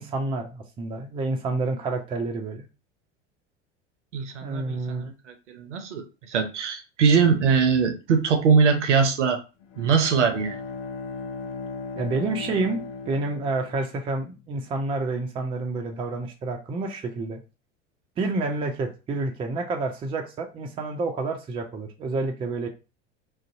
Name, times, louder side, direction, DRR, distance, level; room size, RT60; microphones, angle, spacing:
voice 1, 0.0-2.7 4.4-5.1 12.0-12.8 13.1-17.4 18.2-22.7, right 3 dB, 15° right, 3 dB, 0.4 m, -29 dB
voice 2, 4.1-9.4 9.8-10.6, right 5 dB, 75° right, 6 dB, 0.6 m, -22 dB
Bowed string instrument, 9.6-14.3, left 4 dB, 40° left, 0.5 m, -37 dB
2.5 x 2.1 x 2.5 m, 0.30 s
figure-of-eight pair, 70°, 37 cm